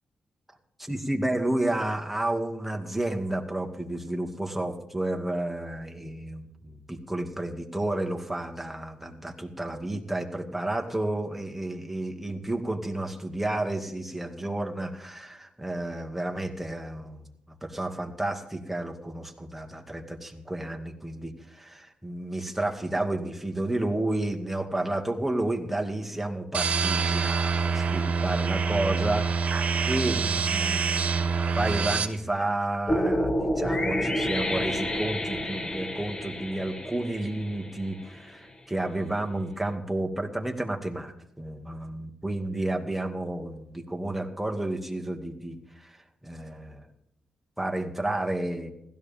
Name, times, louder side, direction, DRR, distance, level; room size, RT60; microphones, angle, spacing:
voice 1, 0.8-17.3 17.6-29.5 29.9-46.8 47.6-48.7, right 1 dB, 5° right, 2 dB, 2.2 m, -31 dB
sound 1, 26.5-32.1, right 5 dB, 60° right, 1.5 m, -26 dB
sound 2, 32.9-38.1, equal, 30° left, 1.7 m, -29 dB
16.0 x 13.0 x 3.6 m, 0.81 s
cardioid pair, 65°, 3 cm